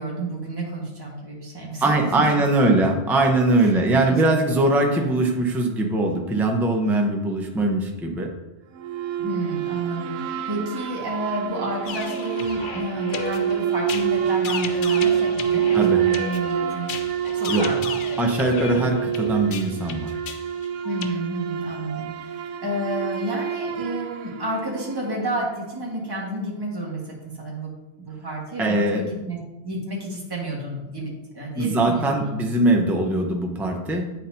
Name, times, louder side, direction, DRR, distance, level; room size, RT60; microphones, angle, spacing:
voice 1, 0.0-2.0 2.3-2.8 3.6-4.1 9.2-16.9 17.2-18.3 18.7-19.0 20.8-29.4 29.6-32.4, right 1 dB, 20° right, -4 dB, 1.6 m, -31 dB
voice 2, 1.8-8.3 15.7-16.0 17.5-17.7 18.2-20.2 28.6-29.0 31.6-34.1, right 2 dB, ahead, 2 dB, 0.5 m, -21 dB
sound 1, 8.8-25.4, right 9 dB, 90° right, 0.9 m, -27 dB
sound 2, 11.9-21.1, left 6 dB, 55° left, 0.6 m, -35 dB
9.7 x 4.2 x 2.7 m, 1.0 s
omnidirectional pair, 1.2 m